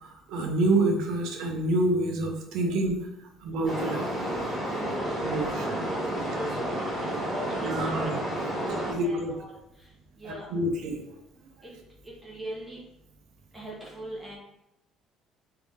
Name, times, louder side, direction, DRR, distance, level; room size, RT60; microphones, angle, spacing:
voice 1, 0.0-3.0 3.4-4.0 5.2-5.7 7.6-8.2 8.9-9.3 10.2-11.0, right 2 dB, 60° right, 3 dB, 0.6 m, -27 dB
sound 1, 3.6-8.9, right 1 dB, 10° left, 1.4 m, -31 dB
voice 2, 4.8-5.2 5.7-6.0 6.3-8.2 8.6-9.5 10.2-10.5 12.0-12.8 13.5-14.4, equal, 5° right, -4 dB, 0.9 m, -40 dB
3.3 x 2.6 x 3.5 m, 0.87 s
cardioid pair, 175°, 0 cm